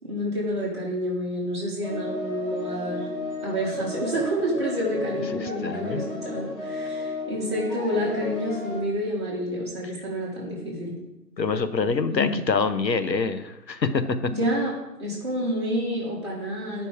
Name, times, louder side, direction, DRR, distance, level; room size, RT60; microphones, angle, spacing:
voice 1, 0.0-3.1 3.4-10.9 12.1-12.4 14.3-14.7 15.0-16.9, equal, 15° right, -7 dB, 1.9 m, -28 dB
sound 1, 1.8-8.8, left 2 dB, 30° left, 1.9 m, -33 dB
voice 2, 5.4-6.0 11.4-14.0, left 4 dB, 80° left, 10 dB, 0.9 m, -25 dB
8.3 x 5.3 x 4.9 m, 0.98 s
figure-of-eight pair, 160°, 50 cm